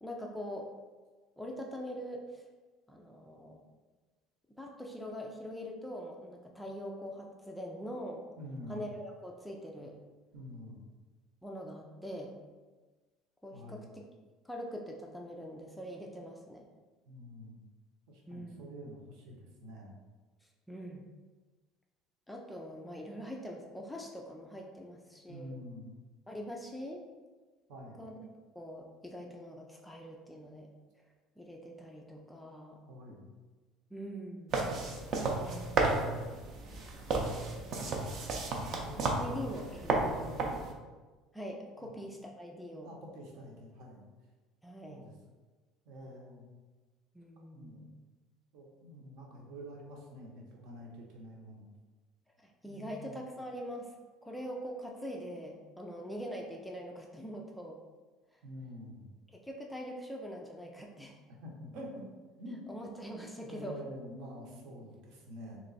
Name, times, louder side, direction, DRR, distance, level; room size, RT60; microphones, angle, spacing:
voice 1, 0.0-0.7 1.4-2.4 2.9-3.6 4.6-8.2 8.7-10.0 11.4-12.3 13.4-14.1 14.4-16.7 18.3-18.8 20.7-21.0 22.3-25.5 26.3-27.0 28.0-28.2 28.6-30.7 31.4-32.8 33.1-33.2 33.9-34.6 35.5-35.9 38.7-40.2 41.3-42.9 44.6-45.0 47.1-47.9 52.4-53.9 54.2-57.8 59.3-61.2 62.7-63.8, equal, 5° left, 0 dB, 0.3 m, -43 dB
voice 2, 8.4-8.8 10.3-10.8 13.5-13.9 17.0-17.6 18.1-19.9 25.3-26.0 27.7-28.0 32.9-33.3 35.7-36.4 37.7-38.0 38.6-39.7 40.2-40.6 41.8-41.9 42.8-44.0 44.8-45.1 45.8-46.5 47.5-47.8 48.5-51.7 52.6-53.2 58.4-59.1 61.3-62.0 62.4-62.6 63.5-65.6, equal, 65° right, -1 dB, 0.9 m, -47 dB
sound 1, 34.5-40.7, right 3 dB, 40° right, 0.6 m, -33 dB
3.2 x 3.0 x 4.0 m, 1.3 s
cardioid pair, 165°, 0 cm